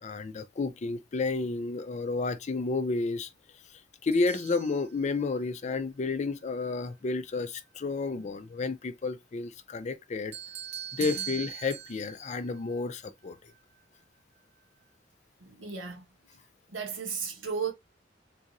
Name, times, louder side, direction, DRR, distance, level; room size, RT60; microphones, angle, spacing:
voice 1, 0.0-3.3 4.0-10.3 10.9-13.4, left 3 dB, 40° left, 0.4 m, -31 dB
sound 1, 4.1-5.5 10.3-13.6, right 9 dB, 35° right, 0.3 m, -41 dB
voice 2, 15.4-16.0 16.7-17.7, right 6 dB, 80° right, 1.2 m, -35 dB
3.7 x 2.9 x 2.6 m
head